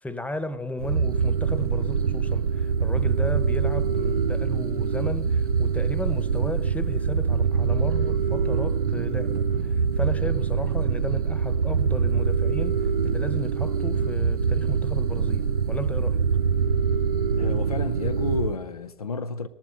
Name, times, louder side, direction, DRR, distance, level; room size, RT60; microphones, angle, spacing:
voice 1, 0.0-16.2, left 1 dB, 10° left, 1.0 m, -34 dB
sound 1, 0.8-18.5, right 6 dB, 85° right, 0.4 m, -24 dB
voice 2, 17.4-19.5, left 4 dB, 90° left, 0.5 m, -31 dB
19.0 x 7.2 x 8.6 m
figure-of-eight pair, 60°, 18 cm